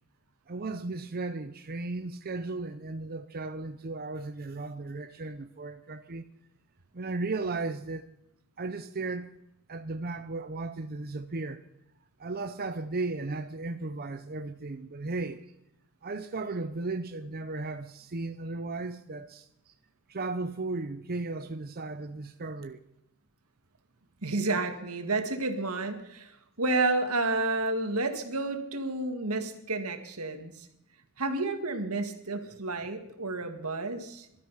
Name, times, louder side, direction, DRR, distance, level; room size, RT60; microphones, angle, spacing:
voice 1, 0.5-6.2 6.9-8.0 8.6-9.3 9.7-11.6 12.2-15.4 16.0-19.5 20.1-22.8, right 3 dB, 45° right, 0.8 m, -35 dB
voice 2, 24.2-26.3 26.6-30.7 31.2-34.3, right 2 dB, 85° right, 2.1 m, -30 dB
19.5 x 13.0 x 5.7 m
head